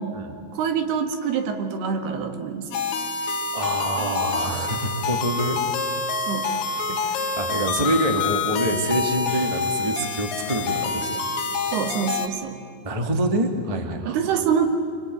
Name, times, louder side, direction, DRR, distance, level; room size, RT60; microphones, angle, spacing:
voice 1, 0.5-2.8 6.3-6.5 11.7-12.6 14.1-14.7, right 7 dB, 80° right, 7 dB, 3.7 m, -25 dB
sound 1, 2.7-12.3, left 4 dB, 80° left, 3.8 m, -27 dB
voice 2, 3.5-5.6 6.9-11.1 12.8-14.4, right 1 dB, 35° right, 5 dB, 0.5 m, -26 dB
26.0 x 24.0 x 9.1 m, 2.6 s
omnidirectional pair, 4.6 m